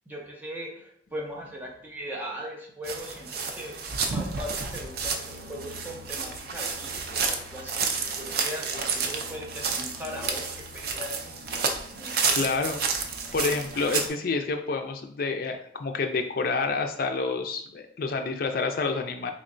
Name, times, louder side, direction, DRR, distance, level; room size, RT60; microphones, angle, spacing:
voice 1, 0.1-3.7 4.1-10.5 10.7-11.3 11.9-12.6, equal, 10° right, -2 dB, 0.6 m, -39 dB
sound 1, 2.8-14.1, right 5 dB, 60° right, 0.5 m, -31 dB
voice 2, 12.3-12.8 13.3-19.3, left 4 dB, 55° left, 5 dB, 0.4 m, -28 dB
3.7 x 3.1 x 2.5 m, 0.65 s
head